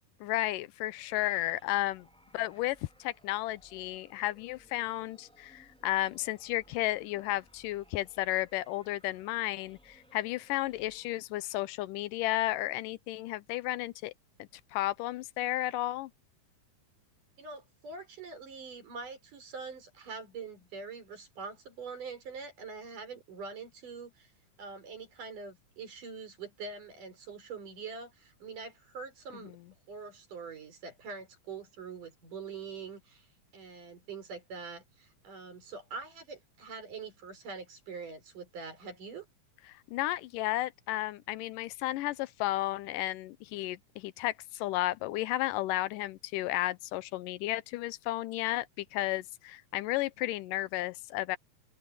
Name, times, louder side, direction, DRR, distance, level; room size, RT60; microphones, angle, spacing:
voice 1, 0.2-2.1 2.3-14.1 14.4-16.1 29.4-29.6 39.7-51.4, left 16 dB, 90° left, 2.4 m, -33 dB
sound 1, 1.0-11.5, equal, ahead, 4.6 m, -63 dB
voice 2, 17.4-24.3 24.6-29.6 29.9-33.3 33.5-39.3, right 5 dB, 75° right, 6.6 m, -44 dB
open air
omnidirectional pair, 3.7 m